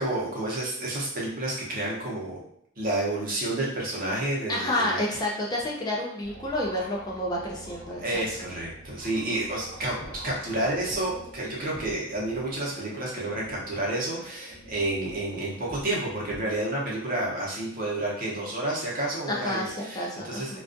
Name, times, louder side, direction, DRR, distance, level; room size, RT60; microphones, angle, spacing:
voice 1, 0.0-2.4 2.8-5.0 8.0-10.0 10.2-20.6, right 1 dB, 45° right, -4 dB, 0.7 m, -30 dB
voice 2, 4.5-8.2 19.3-20.6, left 1 dB, 20° left, -3 dB, 0.4 m, -29 dB
sound 1, 6.2-15.7, right 1 dB, 60° left, 1.0 m, -47 dB
sound 2, 9.8-12.6 14.9-16.4, equal, 5° left, 1.3 m, -47 dB
2.3 x 2.3 x 2.5 m, 0.70 s
head